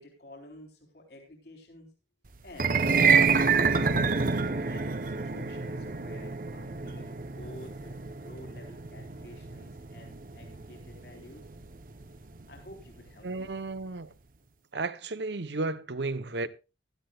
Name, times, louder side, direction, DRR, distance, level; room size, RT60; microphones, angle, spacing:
voice 1, 0.0-1.9 2.4-2.9 3.5-11.5 12.5-13.5, left 1 dB, 65° left, 3.7 m, -50 dB
sound 1, 2.5-12.8, right 5 dB, 50° right, 0.9 m, -28 dB
voice 2, 13.2-14.1 14.7-16.5, right 3 dB, 75° right, 0.9 m, -33 dB
16.0 x 12.5 x 2.4 m
head